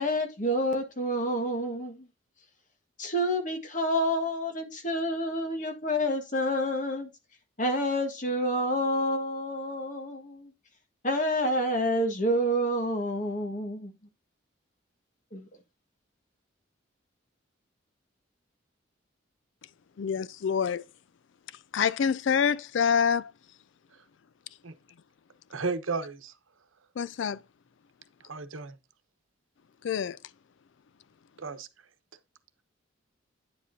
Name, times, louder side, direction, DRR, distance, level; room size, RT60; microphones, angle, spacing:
voice 1, 0.0-2.1 3.0-7.1 7.6-10.5 11.0-13.9 15.3-15.5, equal, 40° left, 1.6 m, -28 dB
voice 2, 20.0-20.8 21.7-23.3 27.0-27.4 29.8-30.2, left 7 dB, 65° left, 0.4 m, -26 dB
voice 3, 25.5-26.3 28.2-28.7 31.4-31.7, right 4 dB, 80° right, 1.0 m, -33 dB
9.4 x 7.5 x 2.7 m
head